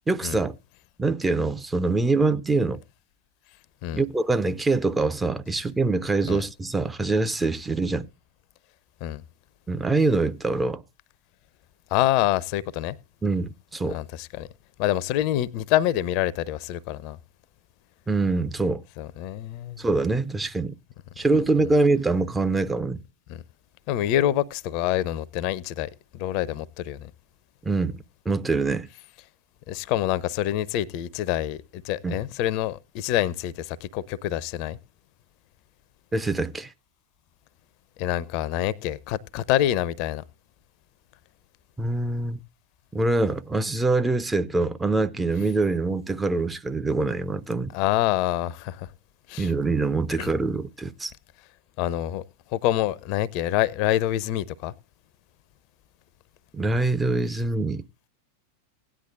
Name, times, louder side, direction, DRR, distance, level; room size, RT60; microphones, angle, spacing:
voice 1, 0.1-0.6 1.0-2.8 3.9-8.1 9.7-10.8 13.2-14.0 18.1-18.8 19.8-20.8 21.2-23.0 27.7-28.9 32.0-32.2 36.1-36.7 41.8-42.4 42.9-47.7 49.4-51.1 56.5-57.8, right 3 dB, 10° right, 0.6 m, -24 dB
voice 2, 11.9-13.0 13.9-14.5 14.8-17.2 19.0-19.8 21.6-21.7 23.3-23.4 23.9-27.1 29.7-34.8 38.0-40.2 47.7-48.9 49.3-49.5 50.2-50.3 51.8-52.2 52.5-54.7, left 13 dB, 45° left, 0.6 m, -26 dB
17.0 x 9.9 x 2.4 m
figure-of-eight pair, 90°, 0 cm